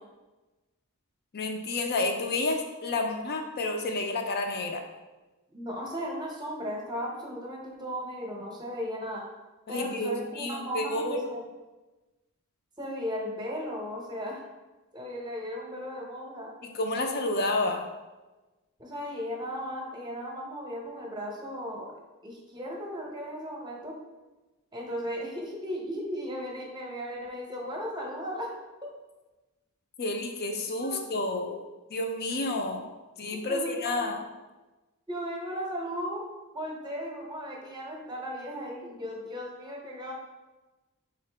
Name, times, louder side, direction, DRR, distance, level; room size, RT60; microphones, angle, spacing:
voice 1, 1.3-4.8 9.7-11.2 16.7-17.8 30.0-31.6 31.9-32.9 33.2-34.2, left 2 dB, 45° left, 4 dB, 0.5 m, -30 dB
voice 2, 5.5-9.2 9.7-11.4 12.8-14.4 14.9-16.5 18.8-22.0 22.2-24.0 24.7-28.5 30.8-31.0 31.5-31.6 33.3-34.1 35.1-36.3 36.5-40.1, equal, 20° right, -1 dB, 0.8 m, -36 dB
3.8 x 3.8 x 3.3 m, 1.1 s
head